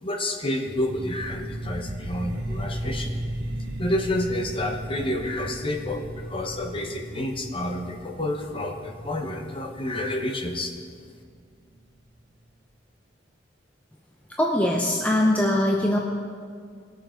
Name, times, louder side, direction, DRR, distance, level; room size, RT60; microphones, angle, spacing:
voice 1, 0.0-3.1 3.8-10.7, left 1 dB, 30° left, 3 dB, 1.1 m, -29 dB
sound 1, 0.8-11.8, right 1 dB, 60° right, 1.4 m, -36 dB
voice 2, 14.4-16.0, left 1 dB, 10° left, -1 dB, 0.7 m, -21 dB
20.0 x 6.7 x 4.5 m, 2.1 s
head